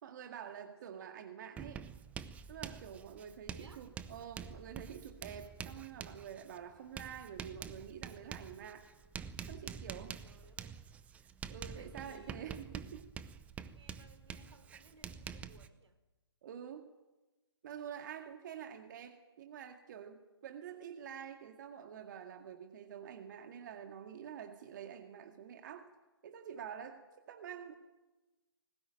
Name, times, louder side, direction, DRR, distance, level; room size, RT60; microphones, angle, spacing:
voice 1, 0.0-1.9 2.5-8.9 9.5-10.2 11.5-13.1 16.4-16.9 17.6-25.9 26.2-27.8, right 8 dB, 45° right, 5 dB, 1.9 m, -48 dB
voice 2, 0.6-1.1 3.5-3.8 10.2-10.7 11.7-12.4 13.7-16.0 18.2-18.3, right 3 dB, 80° right, 9 dB, 3.5 m, -60 dB
Writing, 1.6-15.7, right 7 dB, 10° right, 0.7 m, -47 dB
20.5 x 19.0 x 9.0 m, 1.1 s
figure-of-eight pair, 140°, 14 cm